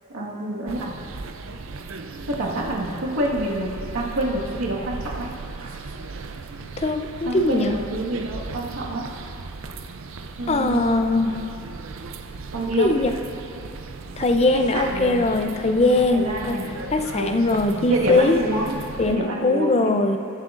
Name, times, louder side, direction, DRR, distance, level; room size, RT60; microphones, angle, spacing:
voice 1, 0.1-0.9 2.3-5.3 5.6-5.8 7.2-9.0 10.4-10.9 12.5-12.9 14.7-15.3 16.1-16.7 17.1-17.4 17.9-18.8 19.0-20.0, right 1 dB, 85° right, -4 dB, 1.6 m, -27 dB
sound 1, 0.7-19.2, right 3 dB, 65° right, 0.5 m, -37 dB
voice 2, 6.8-7.7 10.5-11.4 12.8-13.1 14.2-16.6 16.9-18.4 19.0-20.2, left 2 dB, 30° left, 6 dB, 0.5 m, -21 dB
20.5 x 7.6 x 2.5 m, 2.7 s
head